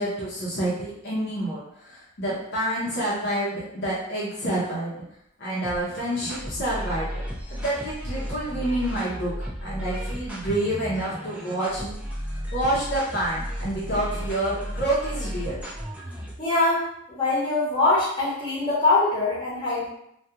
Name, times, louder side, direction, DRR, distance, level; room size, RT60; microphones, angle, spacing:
voice 1, 0.0-5.0 5.4-7.1 7.5-9.3 9.6-11.9 12.2-15.6, right 1 dB, 50° left, -7 dB, 0.6 m, -28 dB
sound 1, 5.6-16.5, equal, 5° right, 0.3 m, -34 dB
voice 2, 16.4-19.9, left 2 dB, 20° left, -8 dB, 0.8 m, -23 dB
2.3 x 2.2 x 2.8 m, 0.74 s
head